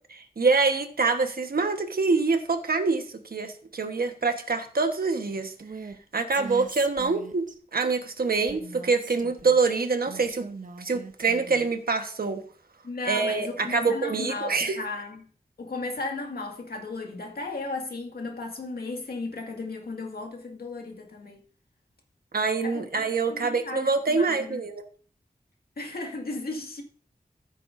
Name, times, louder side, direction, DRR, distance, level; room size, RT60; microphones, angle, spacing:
voice 1, 0.1-5.5 6.1-10.5 10.8-12.4 13.0-14.8 22.3-24.8, right 4 dB, 75° right, 1.3 m, -25 dB
Female speech woman speaking, 5.6-6.0 6.3-7.6 8.5-9.6 10.1-11.7, right 4 dB, 60° right, 1.0 m, -41 dB
voice 2, 12.8-15.2 15.6-21.4 22.6-22.9 23.3-24.6 25.8-26.8, left 3 dB, 85° left, 2.1 m, -35 dB
14.5 x 7.5 x 2.7 m
wide cardioid pair, 80°, 15 cm